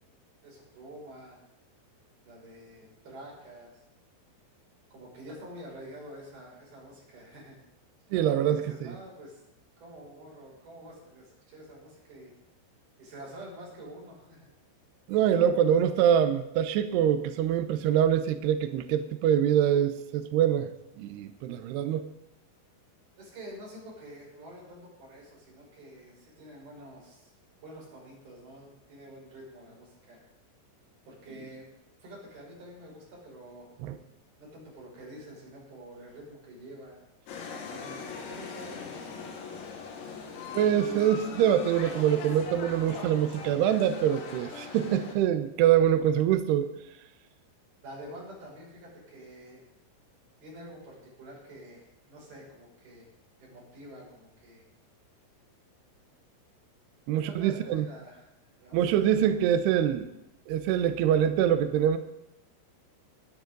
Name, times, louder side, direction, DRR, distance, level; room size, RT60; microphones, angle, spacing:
voice 1, 0.4-1.4 2.2-3.7 4.9-7.6 8.1-9.4 9.8-12.3 13.0-14.5 23.2-27.3 27.6-30.2 31.1-31.7 32.0-33.7 34.4-37.0 37.7-39.0 47.8-49.7 50.4-53.1 53.4-54.6 57.3-59.4, right 1 dB, 45° right, -4 dB, 8.1 m, -47 dB
voice 2, 8.1-8.9 15.1-20.7 21.0-22.1 33.8-34.0 40.5-46.7 57.1-57.8 58.7-60.1 60.5-62.0, right 10 dB, 85° right, 8 dB, 2.3 m, -24 dB
sound 1, 37.3-45.1, left 5 dB, 80° left, 4.7 m, -41 dB
20.0 x 11.5 x 4.0 m, 0.84 s
omnidirectional pair, 6.0 m